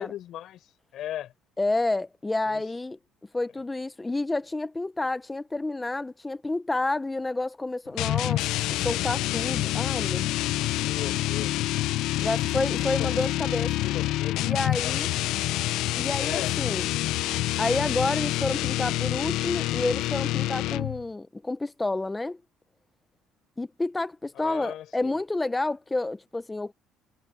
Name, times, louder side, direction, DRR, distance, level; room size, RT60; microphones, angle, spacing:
voice 1, 0.0-1.3 2.5-2.7 10.9-11.5 12.8-13.1 13.8-14.5 14.8-15.0 16.2-16.6 24.4-25.1, left 12 dB, 55° left, 5.9 m, -38 dB
voice 2, 1.6-3.0 3.3-8.4 8.7-10.3 12.2-13.8 14.4-15.1 15.9-16.9 17.6-22.4 23.6-26.7, left 2 dB, 10° left, 0.8 m, -29 dB
sound 1, 8.0-21.1, left 16 dB, 70° left, 0.6 m, -27 dB
cardioid pair, 145°, 0 cm